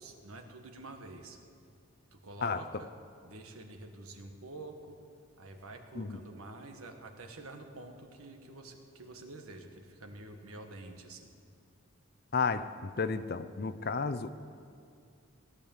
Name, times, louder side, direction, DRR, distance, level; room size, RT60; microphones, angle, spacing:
voice 1, 0.0-1.4 2.1-2.9 3.2-4.9 5.4-11.3, right 2 dB, 85° right, 5 dB, 1.6 m, -48 dB
voice 2, 12.3-14.3, left 5 dB, 45° left, 12 dB, 0.5 m, -32 dB
17.5 x 10.0 x 7.3 m, 2.4 s
head